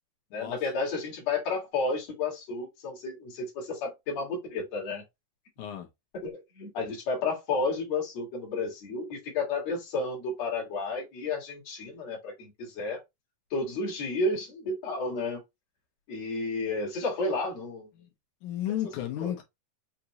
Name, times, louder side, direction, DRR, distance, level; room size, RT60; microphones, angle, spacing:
voice 1, 0.3-5.0 6.2-13.0 13.5-15.4 16.1-17.9 19.2-19.3, left 3 dB, 55° left, 2.7 m, -32 dB
voice 2, 18.4-19.4, left 11 dB, 75° left, 2.3 m, -33 dB
5.9 x 2.6 x 2.8 m
omnidirectional pair, 3.8 m